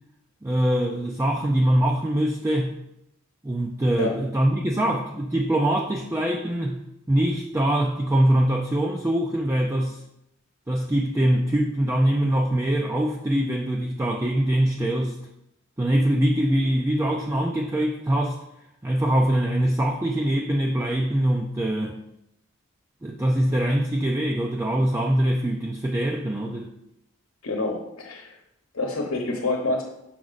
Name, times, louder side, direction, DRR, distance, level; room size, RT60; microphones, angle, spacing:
voice 1, 0.4-2.8 3.4-6.8 7.1-10.0 10.7-15.2 15.8-18.4 18.8-22.0 23.0-26.7, right 1 dB, 15° right, 0 dB, 0.4 m, -23 dB
voice 2, 27.4-28.4 28.7-29.8, left 2 dB, 75° left, 1 dB, 1.0 m, -27 dB
6.2 x 4.9 x 4.0 m, 0.84 s
head